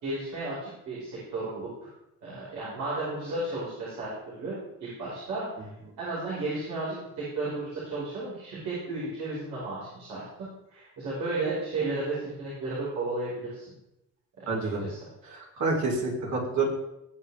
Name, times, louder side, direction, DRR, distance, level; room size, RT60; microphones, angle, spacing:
voice 1, 0.0-1.9 2.2-5.7 6.0-13.6 14.5-15.0, right 2 dB, 85° right, -9 dB, 5.6 m, -34 dB
voice 2, 14.5-14.8 15.6-16.7, right 3 dB, 65° right, -3 dB, 4.6 m, -27 dB
18.5 x 8.5 x 3.6 m, 0.88 s
cardioid pair, 90°, 30 cm